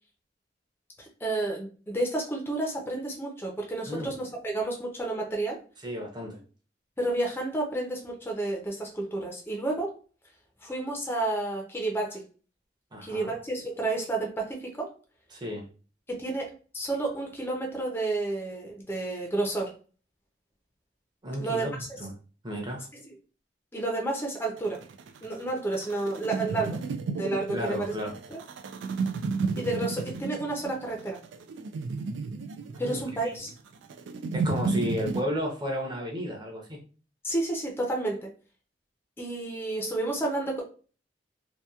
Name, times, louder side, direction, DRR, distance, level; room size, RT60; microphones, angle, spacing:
voice 1, 1.0-5.6 7.0-9.9 10.6-12.2 13.0-14.9 16.1-19.7 21.4-21.7 22.9-23.0 23.7-24.8 25.2-26.8 27.1-27.9 28.3-28.4 29.6-31.2 32.8-33.5 37.2-38.3 39.2-40.6, right 2 dB, 15° left, 0 dB, 0.5 m, -31 dB
voice 2, 5.8-6.4 12.9-13.3 15.3-15.7 21.2-22.1 22.4-22.9 27.5-28.1 32.7-33.3 34.3-36.8, equal, 25° right, 0 dB, 0.7 m, -33 dB
sound 1, 24.6-35.2, right 4 dB, 90° right, 0.3 m, -33 dB
2.8 x 2.1 x 2.3 m, 0.37 s
head